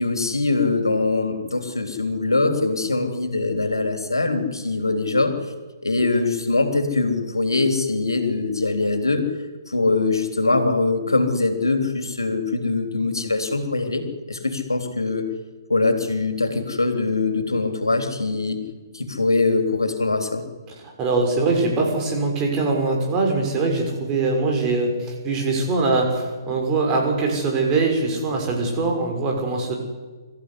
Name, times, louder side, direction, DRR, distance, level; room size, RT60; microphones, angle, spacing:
voice 1, 0.0-5.3 5.8-9.3 9.7-14.0 14.3-15.2 15.7-18.6 18.9-20.5, left 3 dB, 85° left, 7 dB, 3.4 m, -22 dB
voice 2, 21.0-29.7, right 3 dB, 25° right, 1 dB, 6.4 m, -22 dB
24.5 x 14.5 x 9.9 m, 1.3 s
figure-of-eight pair, 130°, 2 cm